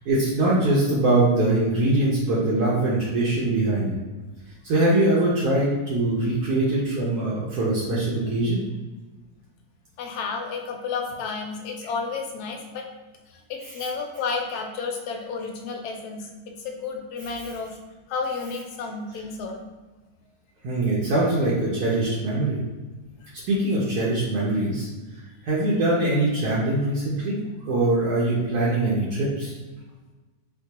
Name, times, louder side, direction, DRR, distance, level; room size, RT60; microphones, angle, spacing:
voice 1, 0.1-3.9 4.6-8.6 13.6-13.8 20.6-22.6 23.5-24.9 25.4-27.4 27.6-29.5, right 2 dB, 75° right, -6 dB, 1.2 m, -22 dB
voice 2, 10.0-12.9 13.3-16.3 16.6-17.8 18.1-19.6, left 4 dB, 80° left, 3 dB, 1.1 m, -31 dB
4.4 x 2.2 x 2.8 m, 1.2 s
omnidirectional pair, 1.7 m